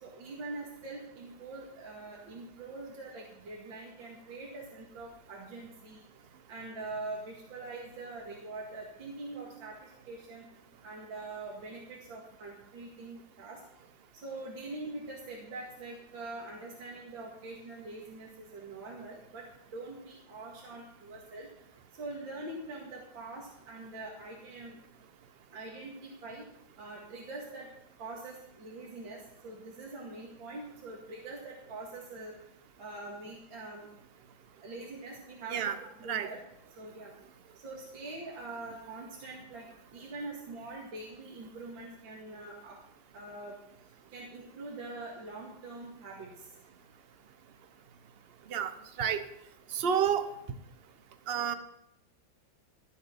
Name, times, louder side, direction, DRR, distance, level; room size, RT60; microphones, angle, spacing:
voice 1, 0.0-6.0 6.5-10.4 10.8-13.6 14.1-19.4 19.7-21.5 22.0-24.8 25.5-26.4 26.8-27.7 28.0-32.3 32.8-33.9 34.6-36.4 36.8-37.1 37.6-42.8 43.1-43.6 44.1-46.3, right 2 dB, 70° right, -2 dB, 2.8 m, -44 dB
voice 2, 49.7-50.3 51.3-51.5, right 8 dB, 50° right, 10 dB, 0.7 m, -29 dB
14.0 x 7.4 x 7.1 m, 0.78 s
omnidirectional pair, 2.2 m